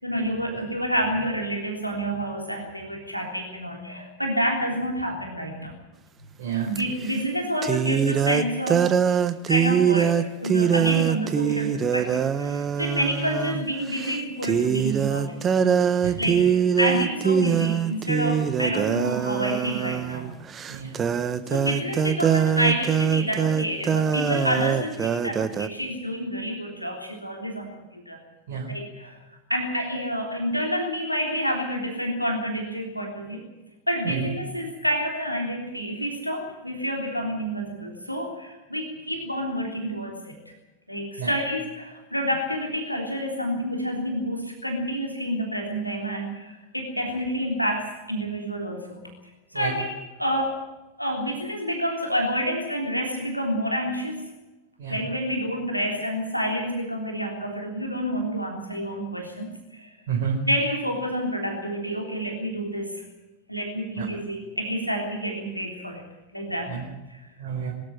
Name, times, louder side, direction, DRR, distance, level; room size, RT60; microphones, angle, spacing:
voice 1, 0.0-5.7 6.7-15.6 16.2-16.4 16.8-20.3 21.5-28.2 28.7-29.2 29.5-33.4 33.9-40.3 40.9-49.0 49.5-49.9 50.2-50.6 51.0-54.2 54.9-59.9 60.4-63.0 63.5-66.0 66.3-66.7 67.1-67.2, equal, 90° left, 2 dB, 3.4 m, -28 dB
voice 2, 6.4-6.8 16.0-16.2 18.4-18.5 20.7-21.1 28.5-28.7 34.0-34.3 41.2-41.3 49.5-49.8 54.8-55.0 60.1-60.4 64.0-64.1 66.7-66.8 67.4-67.7, right 7 dB, 55° right, -1 dB, 4.5 m, -30 dB
sound 1, 6.7-6.8 7.6-13.6 14.0-14.2 14.4-25.7, right 8 dB, 25° right, 1.2 m, -23 dB
23.5 x 13.0 x 9.0 m, 1.1 s
figure-of-eight pair, 90°, 0 cm